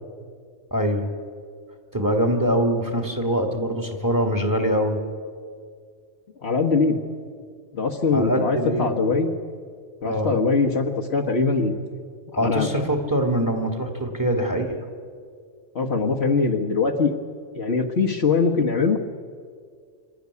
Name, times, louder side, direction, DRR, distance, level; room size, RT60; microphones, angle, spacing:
voice 1, 0.7-1.1 1.9-5.0 8.1-9.1 10.0-10.3 12.4-14.8, equal, 15° right, 3 dB, 2.0 m, -23 dB
voice 2, 6.4-7.0 7.7-9.3 10.0-11.8 12.3-12.7 15.7-17.1 17.5-19.0, left 4 dB, 55° left, 1 dB, 1.5 m, -22 dB
26.0 x 12.5 x 9.5 m, 2.1 s
omnidirectional pair, 1.3 m